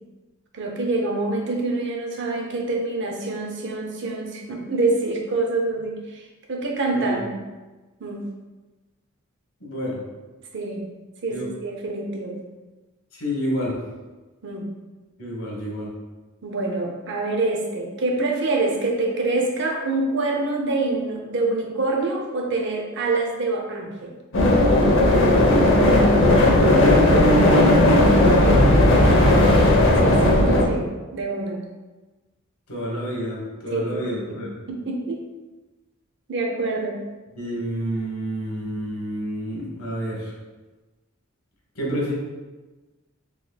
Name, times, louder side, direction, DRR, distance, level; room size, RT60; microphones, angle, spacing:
voice 1, 0.5-7.3 8.0-8.2 10.5-10.8 11.2-12.4 14.4-14.7 16.4-24.2 28.4-28.7 30.0-31.7 33.7-34.4 34.7-35.2 36.3-37.0, right 2 dB, 60° right, 1 dB, 0.6 m, -26 dB
voice 2, 9.6-10.0 11.3-11.5 13.1-13.7 15.2-15.9 26.3-29.5 32.7-34.5 37.3-40.3 41.7-42.1, equal, 85° left, -4 dB, 1.2 m, -27 dB
sound 1, 24.3-30.6, left 1 dB, 65° left, 0.6 m, -16 dB
3.9 x 3.0 x 2.3 m, 1.2 s
head